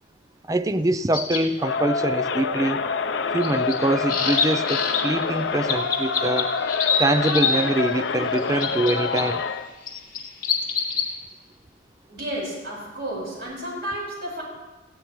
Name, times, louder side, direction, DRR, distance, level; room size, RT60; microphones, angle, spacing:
voice 1, 0.5-2.9 3.3-6.5 7.0-9.4, right 1 dB, 20° right, 13 dB, 0.4 m, -24 dB
sound 1, 1.1-1.4 3.4-5.0 5.7-7.6 8.3-9.2 9.9-11.1, left 6 dB, 45° left, 2.6 m, -24 dB
Crowd, 1.6-9.7, left 5 dB, 70° left, 0.6 m, -27 dB
voice 2, 12.1-14.4, right 1 dB, 55° right, -5 dB, 5.2 m, -32 dB
19.5 x 15.5 x 3.1 m, 1.2 s
head